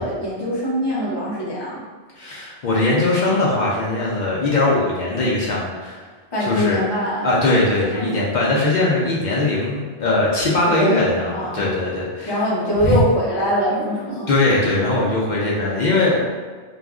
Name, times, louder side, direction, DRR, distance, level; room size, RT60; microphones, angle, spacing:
voice 1, 0.0-1.8 6.3-7.3 7.9-8.2 10.8-11.0 11.3-11.7 12.2-14.3, equal, 25° left, -8 dB, 0.7 m, -23 dB
voice 2, 2.2-6.0 6.4-6.8 7.2-12.3 12.8-13.0 14.3-16.3, left 2 dB, 60° left, -5 dB, 0.5 m, -20 dB
2.4 x 2.0 x 3.5 m, 1.5 s
omnidirectional pair, 1.2 m